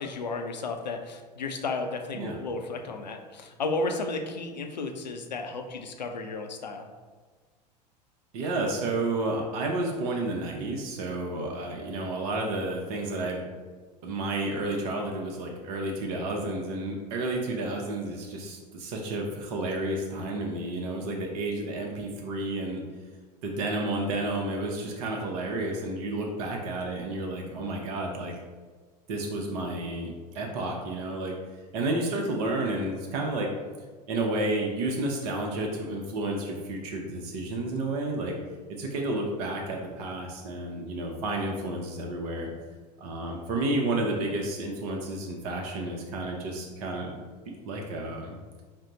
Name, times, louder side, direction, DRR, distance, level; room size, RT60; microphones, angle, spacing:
voice 1, 0.0-6.9, left 3 dB, 90° left, 5 dB, 0.4 m, -33 dB
voice 2, 8.3-13.4 14.0-22.8 23.4-28.4 29.1-31.3 31.7-33.5 34.1-38.3 38.7-42.5 43.0-47.1 47.6-48.3, right 2 dB, 60° right, 0 dB, 0.6 m, -31 dB
4.2 x 2.0 x 3.9 m, 1.4 s
figure-of-eight pair, 80°, 21 cm